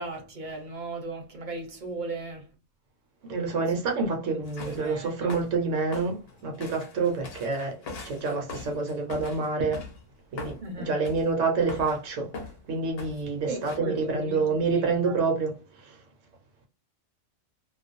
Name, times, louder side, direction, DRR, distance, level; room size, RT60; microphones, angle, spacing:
voice 1, 0.0-2.4 3.5-3.6 4.7-5.3 10.6-10.9 13.5-14.4 14.7-15.2, right 2 dB, 40° right, 0.9 m, -37 dB
voice 2, 3.3-7.8 8.0-9.8 10.3-12.3 12.7-16.0, right 4 dB, 65° right, 1.0 m, -28 dB
sound 1, 4.5-4.9 5.3-5.6 5.9-10.0 10.4-10.6 11.0-11.3 11.7-12.1 12.3-12.6 13.0-13.2 13.6-13.8, left 4 dB, 55° left, 0.8 m, -41 dB
2.4 x 2.2 x 2.5 m
omnidirectional pair, 1.4 m